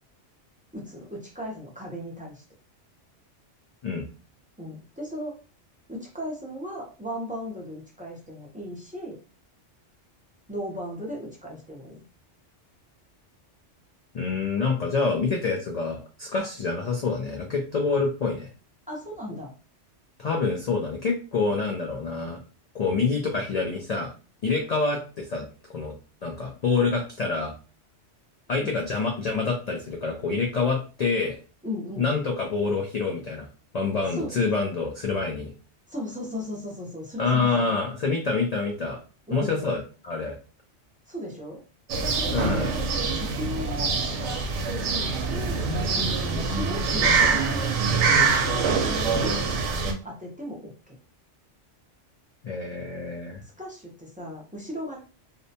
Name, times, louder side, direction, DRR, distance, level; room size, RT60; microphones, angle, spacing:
voice 1, 0.7-2.4 4.6-5.4 5.9-9.2 10.5-12.0 18.9-19.5 28.6-28.8 31.6-32.0 34.1-34.3 35.9-37.8 39.3-39.6 41.1-41.6 42.2-43.9 44.2-47.9 48.5-49.4 50.0-51.0 53.6-55.0, equal, 10° right, -2 dB, 0.4 m, -36 dB
voice 2, 14.1-18.5 20.2-22.4 22.7-24.1 24.4-25.5 25.7-25.9 26.2-27.5 28.5-31.4 32.0-33.5 33.7-35.5 37.2-39.0 39.3-40.4 42.3-42.7 52.4-53.4, left 4 dB, 85° left, 1 dB, 0.3 m, -26 dB
sound 1, 41.9-49.9, right 4 dB, 75° right, 0.9 m, -24 dB
2.6 x 2.1 x 2.7 m, 0.35 s
omnidirectional pair, 1.2 m